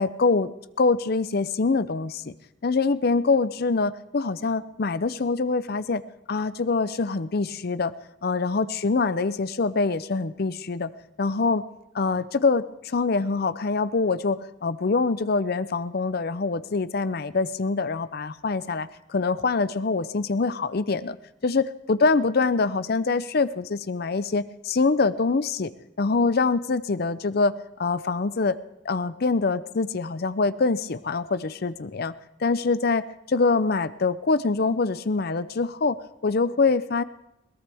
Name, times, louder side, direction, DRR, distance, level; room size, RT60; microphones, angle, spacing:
voice 1, 0.0-2.3 2.6-6.0 6.3-7.9 8.2-10.9 11.2-11.6 11.9-21.2 21.4-25.7 26.0-27.5 27.8-28.6 28.8-32.1 32.4-33.0 33.3-36.0 36.2-37.0, left 4 dB, 50° left, 15 dB, 0.6 m, -24 dB
22.0 x 18.0 x 3.5 m, 0.83 s
head